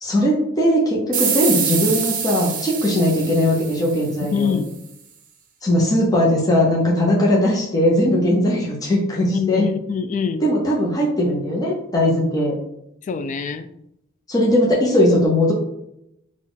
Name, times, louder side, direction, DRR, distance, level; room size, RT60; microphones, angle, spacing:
voice 1, 0.0-4.5 5.6-9.6 10.4-12.6 14.3-15.5, left 1 dB, 20° left, -4 dB, 0.8 m, -19 dB
sound 1, 1.1-4.4, right 7 dB, 45° right, 0.7 m, -25 dB
voice 2, 4.3-4.7 9.3-10.4 13.0-13.7, left 6 dB, 40° left, 11 dB, 0.3 m, -24 dB
4.0 x 2.4 x 3.8 m, 0.79 s
head